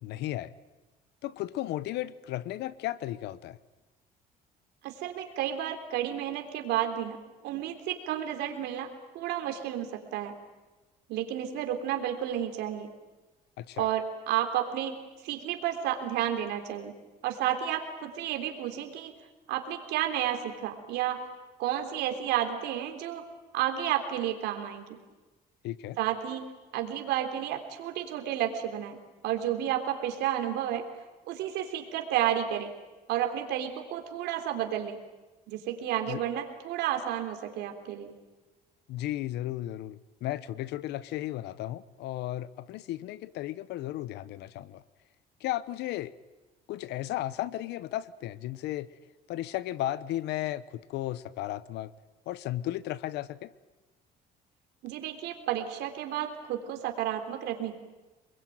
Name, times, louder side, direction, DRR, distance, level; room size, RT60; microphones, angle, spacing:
voice 1, 0.0-0.5 1.2-3.6 13.6-13.9 25.6-26.0 36.1-36.2 38.9-44.8 45.4-46.1 46.7-48.9 49.3-51.9 52.3-53.5, left 14 dB, 85° left, 17 dB, 1.0 m, -34 dB
voice 2, 4.8-7.2 7.4-8.9 9.1-10.3 11.1-12.9 13.8-15.0 15.2-16.9 17.2-19.1 19.5-21.2 21.6-23.2 23.5-25.0 26.0-29.0 29.2-30.9 31.3-32.7 33.1-35.0 35.5-38.1 54.8-57.8, right 11 dB, 85° right, 4 dB, 3.6 m, -31 dB
27.0 x 22.0 x 9.3 m, 1.2 s
cardioid pair, 110°, 17 cm